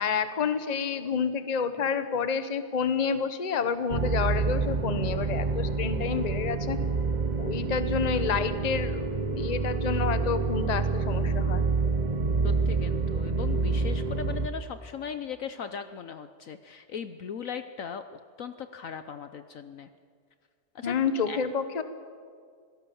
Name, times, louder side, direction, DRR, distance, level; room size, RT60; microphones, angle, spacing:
voice 1, 0.0-6.8 7.4-11.7 20.8-21.8, left 6 dB, 30° left, 11 dB, 1.0 m, -29 dB
sound 1, 3.9-14.5, right 4 dB, 35° right, 0.7 m, -28 dB
voice 2, 12.4-19.9 20.7-21.4, left 7 dB, 60° left, 10 dB, 1.1 m, -38 dB
25.5 x 17.5 x 7.1 m, 2.1 s
omnidirectional pair, 1.7 m